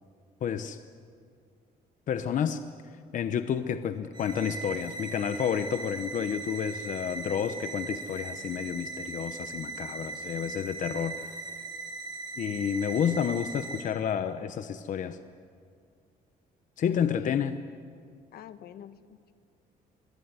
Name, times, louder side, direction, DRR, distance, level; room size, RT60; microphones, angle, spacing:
voice 1, 0.4-0.8 2.1-2.6 3.1-11.3 12.4-15.2 16.8-17.6, left 8 dB, 50° left, 10 dB, 1.0 m, -30 dB
sound 1, 4.1-13.8, right 3 dB, 25° right, 5.4 m, -39 dB
voice 2, 16.9-17.4 18.3-19.3, left 10 dB, 70° left, 11 dB, 1.3 m, -46 dB
26.0 x 21.5 x 9.7 m, 2.2 s
cardioid pair, 145°, 16 cm